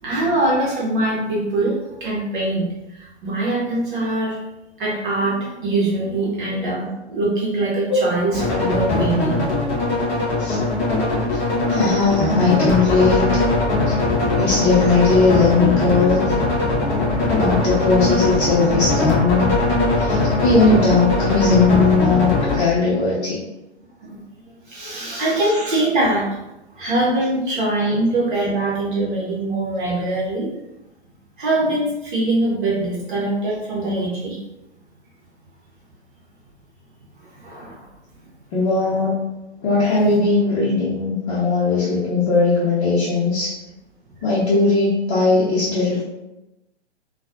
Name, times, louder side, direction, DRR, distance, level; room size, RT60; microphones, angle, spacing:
voice 1, 0.0-2.7 2.9-4.4 4.8-9.5 11.0-11.3 24.0-24.2 24.7-26.3 26.7-30.5 31.4-34.4 37.2-37.8 45.6-45.7, right 2 dB, 45° right, -5 dB, 1.0 m, -23 dB
sound 1, 8.3-22.6, left 2 dB, 15° left, 0.4 m, -20 dB
voice 2, 11.7-13.4 13.9-14.0 14.4-16.2 17.3-19.5 20.0-23.4 27.9-28.0 38.5-39.1 39.6-43.5 44.2-46.0, left 3 dB, 30° left, -9 dB, 0.8 m, -18 dB
4.0 x 2.3 x 2.4 m, 0.96 s
figure-of-eight pair, 115°, 34 cm